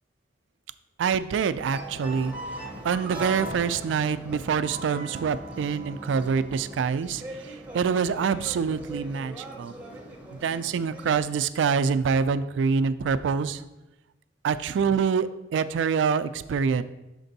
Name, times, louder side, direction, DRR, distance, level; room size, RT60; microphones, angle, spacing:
voice 1, 1.0-2.3 2.8-7.2 7.7-9.7 10.3-13.6 14.4-16.8, right 6 dB, 80° right, 14 dB, 0.3 m, -25 dB
sound 1, 1.7-11.2, right 1 dB, 10° right, 0.8 m, -40 dB
6.6 x 4.5 x 4.0 m, 0.98 s
head